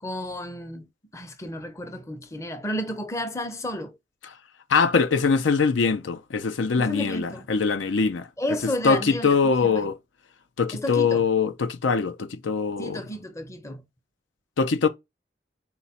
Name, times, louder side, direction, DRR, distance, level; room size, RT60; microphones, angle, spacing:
voice 1, 0.0-0.9 1.1-4.0 6.7-7.5 8.4-9.9 10.7-11.3 12.8-13.8, left 1 dB, 15° left, 0.5 m, -32 dB
voice 2, 4.7-8.3 8.8-9.9 10.6-13.0 14.6-14.9, left 5 dB, 90° left, 0.6 m, -22 dB
4.1 x 2.3 x 4.1 m
head